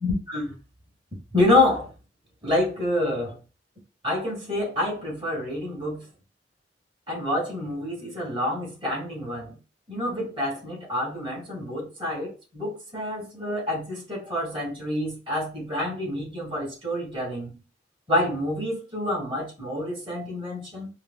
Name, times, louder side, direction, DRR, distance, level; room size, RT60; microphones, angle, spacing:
voice 1, 0.0-0.6 1.3-1.9 2.4-3.4 4.0-6.1 7.1-9.6 9.9-17.5 18.1-20.9, left 1 dB, 30° right, 1.8 m, -27 dB
4.7 x 2.0 x 2.2 m
head